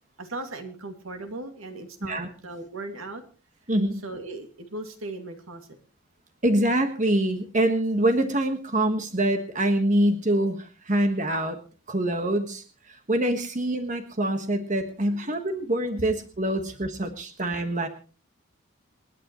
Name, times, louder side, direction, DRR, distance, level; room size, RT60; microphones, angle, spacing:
voice 1, 0.2-3.2 4.0-5.8 15.0-15.4, right 2 dB, 80° right, 6 dB, 2.3 m, -38 dB
voice 2, 3.7-4.0 6.4-11.6 11.9-17.9, right 1 dB, 35° right, 6 dB, 1.4 m, -25 dB
28.5 x 10.0 x 3.1 m, 0.37 s
head